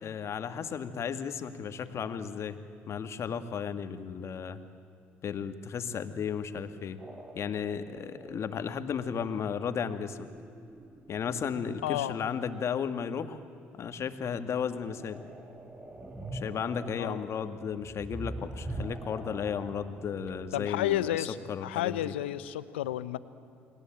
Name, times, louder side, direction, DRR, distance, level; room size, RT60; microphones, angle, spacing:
voice 1, 0.0-2.6 2.9-4.6 5.2-7.0 7.3-10.3 11.1-13.4 13.8-15.2 16.3-22.1, left 7 dB, 50° left, 10 dB, 2.0 m, -34 dB
sound 1, 7.0-12.1 14.7-21.0, right 1 dB, 20° right, 2.8 m, -44 dB
voice 2, 11.8-12.2 17.0-17.2 20.5-21.4 21.6-23.2, left 13 dB, 85° left, 15 dB, 0.9 m, -31 dB
29.5 x 21.0 x 8.9 m, 2.6 s
hypercardioid pair, 60°, 6 cm